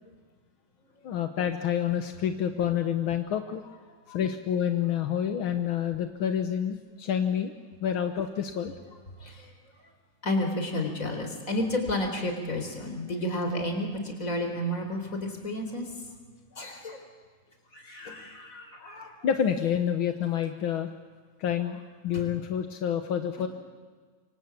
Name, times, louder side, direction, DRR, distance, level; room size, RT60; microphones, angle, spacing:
voice 1, 1.0-3.6 4.1-7.5 7.8-8.7 16.5-16.7 19.2-20.9 21.4-23.5, left 9 dB, 60° left, 7 dB, 1.4 m, -28 dB
voice 2, 9.2-9.5 10.2-15.9 16.6-17.0 17.7-19.1 22.1-22.3 23.4-23.5, left 1 dB, 25° left, 4 dB, 4.3 m, -31 dB
27.0 x 25.0 x 8.4 m, 1.5 s
omnidirectional pair, 3.6 m